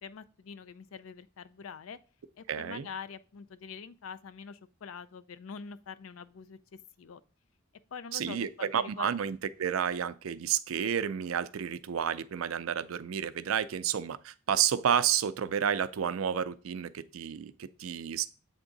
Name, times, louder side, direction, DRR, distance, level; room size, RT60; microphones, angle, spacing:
voice 1, 0.0-2.0 2.4-6.6 7.0-7.2 7.9-9.1, left 6 dB, 85° left, 0.4 m, -44 dB
voice 2, 2.5-2.9 8.1-18.3, right 8 dB, 90° right, 0.4 m, -31 dB
7.9 x 3.6 x 3.9 m
head